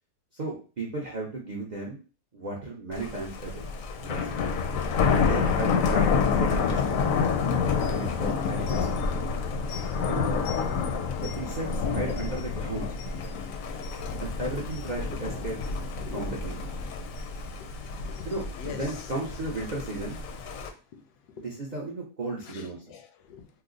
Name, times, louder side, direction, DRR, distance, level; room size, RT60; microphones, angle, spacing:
voice 1, 0.3-2.0 2.3-3.7 4.0-4.5 5.0-7.4 7.8-9.1 10.1-10.3 11.2-12.9 14.2-15.6 16.1-16.6 18.2-20.2 21.4-22.8, right 2 dB, 55° right, -3 dB, 0.5 m, -35 dB
Thunder, 2.9-20.7, left 5 dB, 70° left, 0.8 m, -28 dB
voice 2, 17.3-17.7 18.0-18.3 18.6-18.9 20.9-21.0 21.3-21.4 22.5-23.5, left 6 dB, 85° left, 6 dB, 1.1 m, -44 dB
3.2 x 2.0 x 3.6 m, 0.34 s
omnidirectional pair, 1.7 m